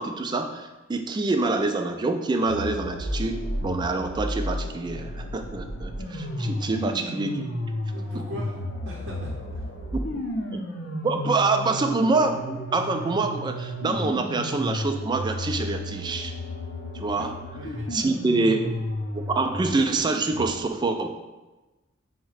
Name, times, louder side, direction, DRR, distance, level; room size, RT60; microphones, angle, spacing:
voice 1, 0.0-7.5 10.5-10.6 11.0-16.3 16.9-17.3 17.9-18.6 19.1-21.2, right 3 dB, 20° right, 6 dB, 0.3 m, -26 dB
sound 1, 2.5-20.5, left 1 dB, 60° left, 0.6 m, -33 dB
voice 2, 7.9-8.6 8.8-9.7 17.1-17.3 17.5-17.9, equal, 60° right, -4 dB, 0.6 m, -40 dB
4.7 x 2.1 x 4.7 m, 1.1 s
head